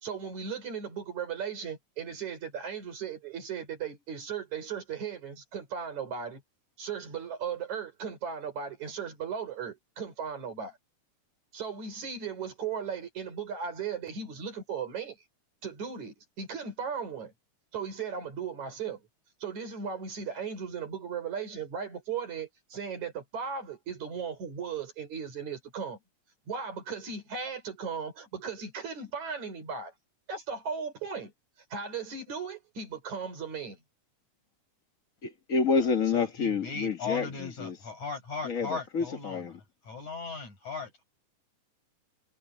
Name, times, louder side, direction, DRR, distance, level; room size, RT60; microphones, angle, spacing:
voice 1, 0.0-6.4 6.8-10.8 11.5-15.2 15.6-17.3 17.7-19.0 19.4-26.0 26.5-29.9 30.3-31.3 31.7-33.8, right 6 dB, 65° right, 5.9 m, -37 dB
voice 2, 35.2-37.8 38.4-39.6, left 5 dB, 50° left, 1.0 m, -29 dB
voice 3, 35.8-41.0, left 4 dB, 65° left, 7.8 m, -38 dB
omnidirectional pair, 3.6 m